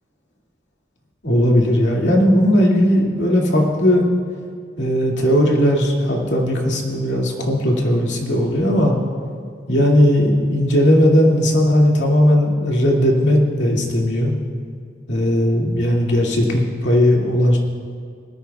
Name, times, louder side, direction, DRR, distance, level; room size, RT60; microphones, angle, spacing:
voice 1, 1.2-4.1 4.8-8.9 9.7-14.3 15.1-17.6, equal, 80° left, -2 dB, 2.2 m, -17 dB
19.5 x 13.5 x 2.3 m, 2.2 s
head